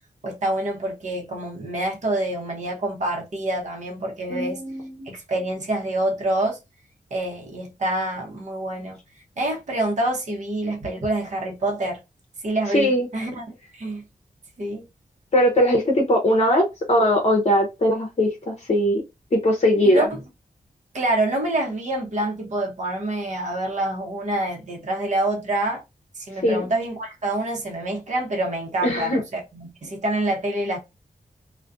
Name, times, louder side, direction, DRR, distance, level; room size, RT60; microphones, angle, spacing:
voice 1, 0.2-4.6 5.1-6.6 7.1-9.0 9.4-12.0 12.4-14.0 14.6-14.8 19.9-20.2 20.9-25.8 26.1-30.8, right 1 dB, 55° right, 0.8 m, -26 dB
voice 2, 4.3-5.1 12.7-13.1 15.3-19.0 19.3-20.1 26.4-26.7 28.8-29.2, equal, 45° left, 0.7 m, -20 dB
2.3 x 2.1 x 2.4 m
cardioid pair, 50°, 15 cm